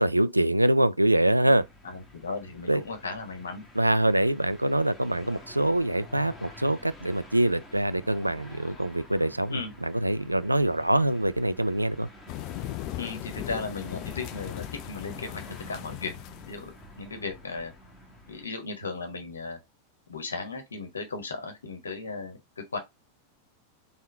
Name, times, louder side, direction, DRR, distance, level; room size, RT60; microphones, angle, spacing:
voice 1, 0.0-1.6 2.7-2.8 3.8-12.1, right 1 dB, 85° right, 0.3 m, -24 dB
sound 1, 1.5-18.5, equal, 10° left, 1.6 m, -49 dB
voice 2, 1.8-3.6 9.5-9.7 13.0-15.4 15.7-16.1 16.5-17.7 18.3-19.6 20.1-22.4 22.7-22.8, left 4 dB, 75° left, 1.4 m, -36 dB
sound 2, 12.3-16.7, left 15 dB, 40° left, 0.4 m, -38 dB
3.7 x 3.7 x 3.5 m
figure-of-eight pair, 90°, 0 cm